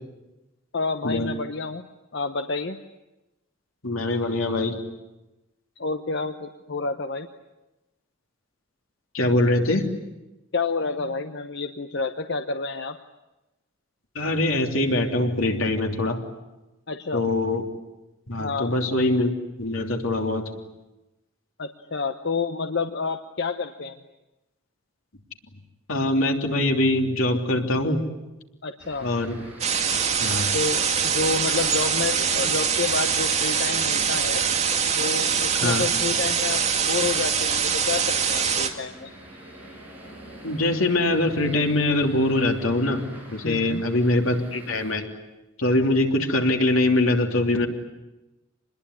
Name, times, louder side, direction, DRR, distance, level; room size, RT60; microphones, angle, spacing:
voice 1, 0.7-1.8 2.1-2.8 5.8-7.3 10.5-13.0 16.9-17.2 18.4-18.7 21.6-24.0 28.6-29.1 30.5-34.4 35.0-39.1 43.4-43.9, left 4 dB, 60° left, 7 dB, 1.0 m, -29 dB
voice 2, 3.8-4.8 9.1-9.9 14.1-16.2 17.1-17.6 18.3-19.3 19.6-20.4 25.9-28.0 29.0-29.4 30.2-30.5 35.6-35.8 40.4-45.1 45.6-47.7, left 1 dB, 85° left, 3 dB, 3.2 m, -23 dB
sound 1, 28.8-44.9, right 1 dB, 10° right, 7.7 m, -46 dB
sound 2, 29.6-38.7, right 7 dB, 35° right, 2.2 m, -23 dB
26.5 x 21.0 x 9.9 m, 1.0 s
head